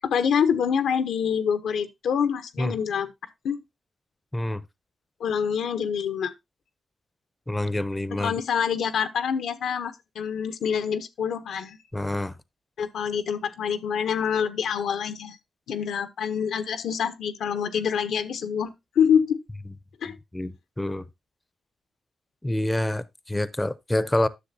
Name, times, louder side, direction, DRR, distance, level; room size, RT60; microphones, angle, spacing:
voice 1, 0.0-3.1 3.4-3.6 5.2-6.3 8.2-11.8 12.8-15.4 15.7-19.4 20.0-20.1, left 7 dB, 85° left, 0.7 m, -26 dB
voice 2, 7.5-8.3 11.9-12.4 20.3-21.1 22.4-24.3, left 1 dB, 15° left, 0.5 m, -27 dB
10.0 x 6.6 x 2.6 m
cardioid pair, 70°, 0 cm